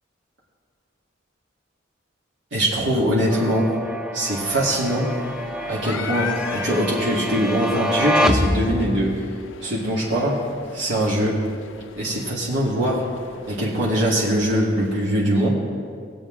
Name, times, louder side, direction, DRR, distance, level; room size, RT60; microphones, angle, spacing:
voice 1, 2.5-3.8 4.1-5.1 5.7-11.5 12.0-13.1 13.5-15.5, equal, 70° right, -5 dB, 2.0 m, -22 dB
sound 1, 3.3-9.2, equal, 5° right, 0.5 m, -26 dB
sound 2, 4.4-14.9, left 6 dB, 85° left, 0.5 m, -39 dB
19.0 x 7.9 x 3.8 m, 2.2 s
head